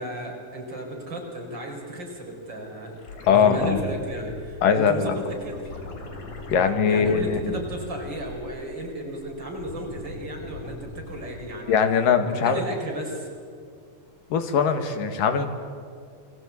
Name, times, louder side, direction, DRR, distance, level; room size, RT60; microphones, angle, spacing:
voice 1, 0.0-3.0 3.3-5.8 6.9-11.8 12.2-13.3, right 1 dB, 35° right, 1 dB, 5.2 m, -34 dB
sound 1, 3.0-8.8 9.1-11.7 14.1-14.2, left 3 dB, 70° left, 4.5 m, -40 dB
voice 2, 3.3-3.8 4.6-5.1 6.5-7.6 11.7-12.7 14.3-15.5, left 6 dB, 85° left, 7 dB, 3.6 m, -21 dB
28.0 x 22.5 x 8.5 m, 2.2 s
omnidirectional pair, 3.7 m